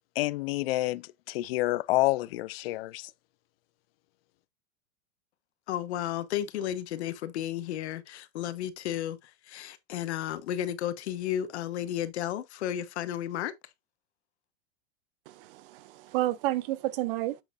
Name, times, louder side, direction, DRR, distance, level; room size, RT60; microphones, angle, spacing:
voice 1, 0.2-1.0 1.3-3.1, left 18 dB, 60° left, 0.5 m, -28 dB
voice 2, 5.7-13.5, left 11 dB, 85° left, 1.2 m, -33 dB
voice 3, 15.3-17.4, right 16 dB, 55° right, 0.7 m, -31 dB
7.7 x 6.4 x 2.4 m
supercardioid pair, 155°, 33 cm